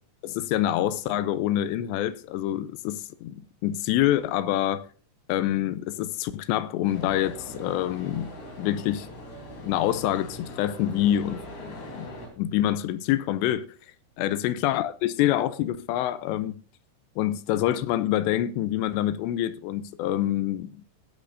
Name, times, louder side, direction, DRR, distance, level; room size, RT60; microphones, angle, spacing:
voice 1, 0.2-4.9 5.3-8.3 8.6-9.1 9.6-12.1 12.4-13.7 14.2-16.6 17.2-20.7, left 12 dB, 85° left, 2.8 m, -26 dB
sound 1, 6.8-12.3, left 1 dB, 70° left, 5.7 m, -41 dB
19.0 x 8.2 x 2.6 m
omnidirectional pair, 5.1 m